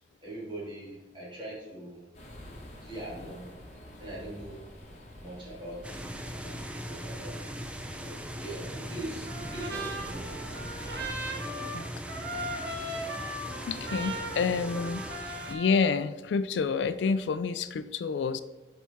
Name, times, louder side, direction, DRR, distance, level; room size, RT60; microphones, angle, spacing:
voice 1, 0.2-2.1 2.8-3.5 4.0-4.6 5.2-6.1 6.3-7.4 8.0-10.3 11.3-11.9, right 1 dB, 30° right, -5 dB, 2.2 m, -42 dB
sound 1, 2.1-11.1, left 1 dB, 40° left, 1.1 m, -48 dB
sound 2, 5.8-15.6, equal, 5° right, 0.4 m, -39 dB
Trumpet, 9.3-16.0, right 1 dB, 65° right, 1.0 m, -38 dB
voice 2, 13.7-15.0 15.5-18.4, left 5 dB, 75° left, 13 dB, 0.3 m, -28 dB
7.4 x 4.1 x 3.5 m, 1.0 s
head